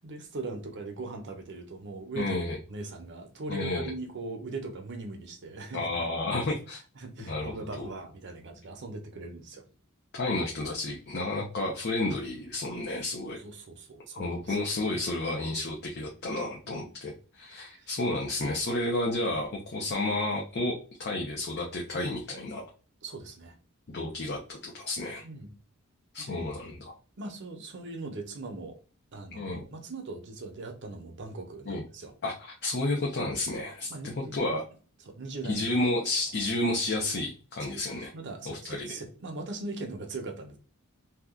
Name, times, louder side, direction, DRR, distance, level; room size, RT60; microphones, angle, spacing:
voice 1, 0.0-2.4 2.7-5.9 6.5-6.6 7.0-9.6 13.2-14.6 16.6-16.9 17.5-17.9 23.0-23.6 25.2-25.5 26.2-26.5 27.2-28.8 29.1-32.1 33.9-34.4 35.1-35.6 37.7-40.6, right 3 dB, 55° right, 0.7 m, -40 dB
voice 2, 2.2-2.6 3.5-3.9 5.7-6.8 7.2-7.9 10.1-13.4 14.1-20.7 21.0-22.6 23.9-25.2 26.1-26.7 29.3-29.6 31.7-31.8 32.2-34.6 35.4-38.1 38.5-38.9, left 2 dB, 50° left, 0.6 m, -31 dB
2.8 x 2.3 x 3.6 m
head